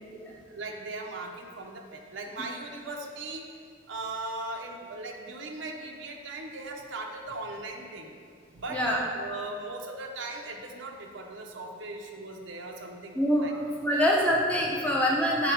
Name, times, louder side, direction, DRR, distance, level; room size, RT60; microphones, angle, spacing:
voice 1, 0.5-3.5 3.9-8.1 8.5-8.8 9.1-13.5 13.9-14.1, right 2 dB, 70° right, 1 dB, 0.8 m, -39 dB
voice 2, 8.7-9.0 13.1-15.5, equal, 5° left, -4 dB, 0.8 m, -25 dB
8.1 x 4.1 x 4.6 m, 2.1 s
head